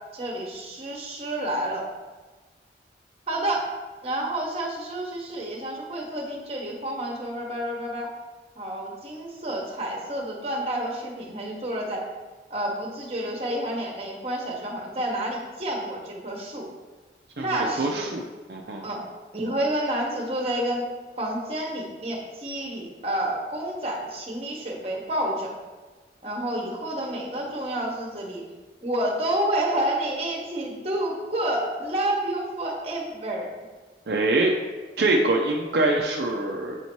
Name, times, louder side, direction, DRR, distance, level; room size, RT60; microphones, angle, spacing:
voice 1, 0.1-1.8 3.3-3.6 4.0-8.1 8.6-12.0 12.5-16.7 17.4-18.1 18.8-19.0 19.3-20.9 21.2-25.5 26.2-28.4 28.8-33.5, right 1 dB, 35° right, -1 dB, 1.1 m, -29 dB
voice 2, 17.4-18.2 18.5-18.8 34.1-34.5 35.0-36.8, right 2 dB, 70° right, 0 dB, 0.5 m, -24 dB
8.0 x 2.8 x 4.5 m, 1.3 s
head